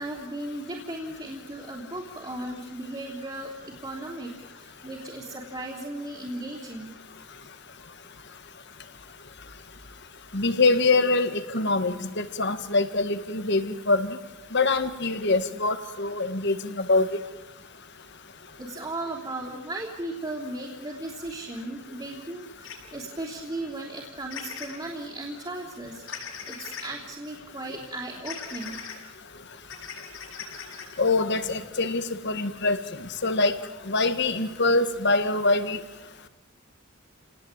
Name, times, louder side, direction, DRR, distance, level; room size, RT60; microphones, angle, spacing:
voice 1, 0.0-6.9 18.6-28.8, right 2 dB, 20° right, -5 dB, 3.3 m, -36 dB
voice 2, 10.3-14.1 14.5-17.1 31.0-32.8 33.2-33.5 33.9-35.8, left 3 dB, 55° left, 10 dB, 1.7 m, -24 dB
sound 1, 22.6-22.7 24.3-24.8 26.1-26.9 28.2-28.9 29.6-30.9, left 7 dB, 70° left, 6.4 m, -38 dB
29.0 x 19.0 x 9.0 m, 1.1 s
head